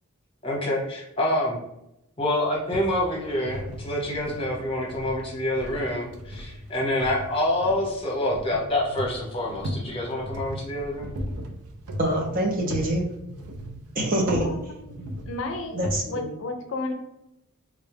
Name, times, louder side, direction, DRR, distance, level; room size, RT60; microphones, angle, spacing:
voice 1, 0.4-1.6 2.2-11.1, left 1 dB, 25° left, -3 dB, 1.0 m, -27 dB
sound 1, 2.7-16.0, equal, 80° right, 0.5 m, -37 dB
voice 2, 12.0-13.0 13.9-14.5 15.7-16.3, right 1 dB, 40° right, 1 dB, 0.6 m, -25 dB
voice 3, 14.4-15.8 16.1-16.9, left 2 dB, 60° left, 4 dB, 0.4 m, -33 dB
3.8 x 2.2 x 3.4 m, 0.83 s
head